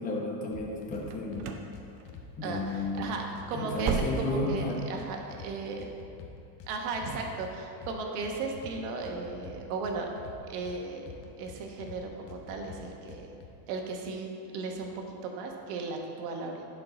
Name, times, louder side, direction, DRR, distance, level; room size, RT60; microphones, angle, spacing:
voice 1, 0.0-1.6 2.4-3.1 3.5-4.8, left 2 dB, 20° left, -1 dB, 0.9 m, -33 dB
sound 1, 0.5-1.0 1.3-2.2 2.5-4.3 4.6-5.5 5.8-7.5 7.8-8.7 9.0-10.8 11.1-12.0 12.3-13.5, left 7 dB, 85° left, 1.1 m, -46 dB
sound 2, 1.0-1.7 2.0-2.4 2.7-2.9 3.3-4.6 4.9-5.0 5.5-5.6, right 6 dB, 40° right, 0.6 m, -35 dB
voice 2, 2.4-5.9 6.7-10.1 10.5-11.0 11.4-13.3 13.7-16.7, right 3 dB, 75° right, 2 dB, 1.3 m, -36 dB
10.5 x 4.8 x 3.8 m, 2.7 s
supercardioid pair, 140°, 47 cm